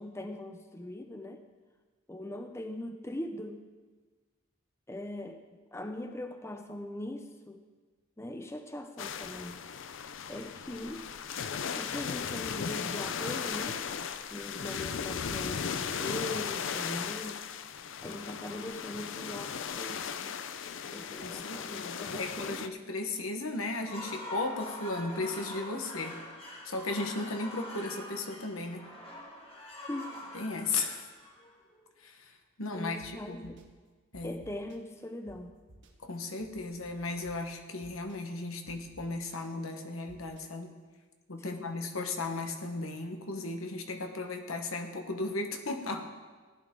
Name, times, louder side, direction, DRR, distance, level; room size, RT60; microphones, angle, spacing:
voice 1, 0.0-1.4 2.1-3.6 4.9-5.4 5.7-7.6 8.2-9.6 10.3-11.1 11.8-13.8 14.3-17.4 18.0-20.4 20.9-22.7 29.9-30.2 32.7-33.6 34.2-35.6 41.4-42.0, left 1 dB, 15° left, 6 dB, 0.6 m, -41 dB
sound 1, 9.0-22.7, left 7 dB, 65° left, 0.5 m, -37 dB
voice 2, 21.2-26.2 26.6-28.8 30.3-31.0 32.0-32.3 32.6-33.5 34.1-34.4 36.0-40.7 41.3-46.1, left 3 dB, 85° left, 5 dB, 1.2 m, -36 dB
sound 2, 23.7-31.8, left 1 dB, 30° left, 1.9 m, -44 dB
sound 3, 33.0-33.1 33.4-33.6 34.1-34.8 35.3-35.4 35.7-35.9 36.4-37.3 37.8-38.2 38.7-39.3 40.1-40.4, right 1 dB, 60° right, 1.4 m, -55 dB
16.0 x 11.0 x 3.7 m, 1.4 s
head